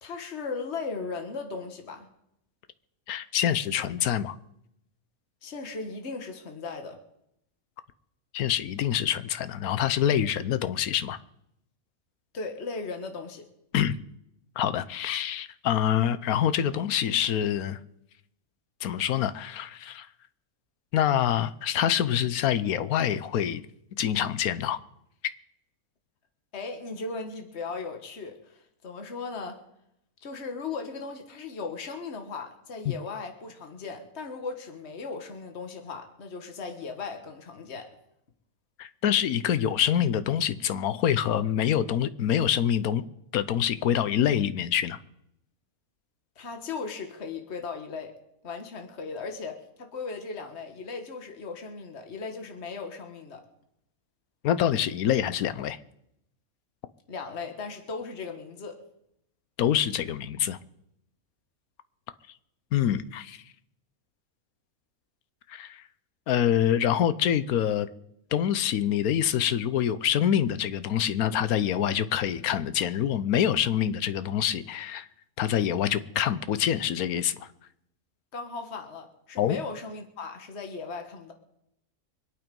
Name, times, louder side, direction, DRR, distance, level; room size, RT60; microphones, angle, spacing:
voice 1, 0.0-2.1 5.4-7.0 12.3-13.5 26.5-29.6 30.2-38.0 46.4-48.2 48.4-53.5 57.1-58.8 78.3-81.3, left 4 dB, 50° left, 4 dB, 1.8 m, -37 dB
voice 2, 3.1-4.4 8.3-11.2 13.7-13.9 14.6-17.8 18.8-20.1 20.9-23.6 24.0-24.8 32.9-33.0 38.8-43.0 43.3-45.0 54.4-55.8 59.6-60.6 62.7-63.4 65.5-65.8 66.3-67.9 68.3-75.1 75.4-77.5 79.4-79.6, left 10 dB, 90° left, 13 dB, 1.2 m, -26 dB
24.5 x 8.9 x 5.3 m, 0.80 s
omnidirectional pair, 1.5 m